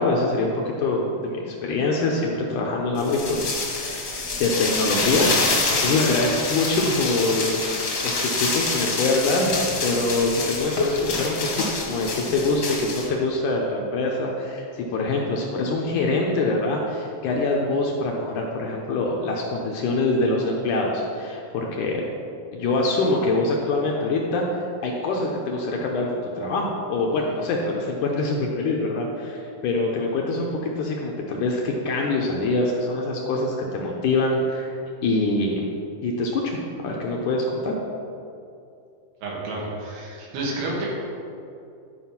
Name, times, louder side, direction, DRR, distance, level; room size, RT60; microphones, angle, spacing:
voice 1, 0.0-4.0 4.4-5.3 5.7-7.6 7.8-9.6 9.8-22.0 22.5-24.4 24.8-34.7 35.0-35.7 36.0-36.6 36.8-37.8, left 2 dB, 75° left, -1 dB, 1.9 m, -24 dB
sound 1, 3.0-13.1, left 3 dB, 50° left, 1.2 m, -26 dB
voice 2, 39.2-40.9, right 2 dB, 90° right, -3 dB, 3.8 m, -30 dB
11.5 x 4.9 x 5.8 m, 2.5 s
omnidirectional pair, 4.3 m